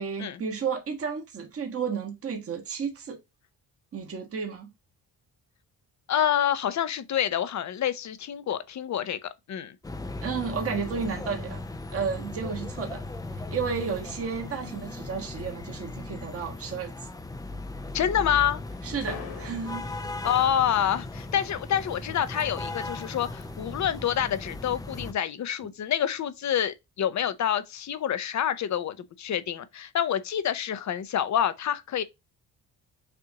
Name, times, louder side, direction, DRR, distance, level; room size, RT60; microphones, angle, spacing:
voice 1, 0.0-3.2 3.9-4.7 10.2-11.6 11.9-13.0 13.5-16.9 18.8-19.8, right 6 dB, 40° right, 1.3 m, -32 dB
voice 2, 6.1-9.8 17.9-18.6 20.2-32.0, left 9 dB, 50° left, 0.6 m, -27 dB
sound 1, 9.8-25.1, left 2 dB, 10° left, 0.4 m, -37 dB
sound 2, 18.6-24.4, left 6 dB, 75° left, 2.1 m, -48 dB
6.7 x 2.5 x 2.8 m
cardioid pair, 130°, 36 cm